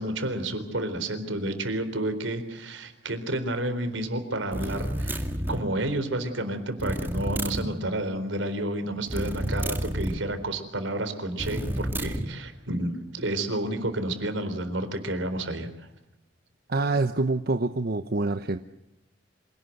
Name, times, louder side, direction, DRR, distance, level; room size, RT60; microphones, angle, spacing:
voice 1, 0.0-5.2 5.5-15.7, right 1 dB, 80° right, 9 dB, 4.0 m, -30 dB
sound 1, 4.5-5.7 6.8-7.7 9.1-10.2 11.4-12.3, right 1 dB, 10° right, 2.1 m, -30 dB
voice 2, 16.7-18.6, right 3 dB, 55° right, 9 dB, 0.9 m, -26 dB
26.5 x 18.5 x 8.0 m, 0.89 s
head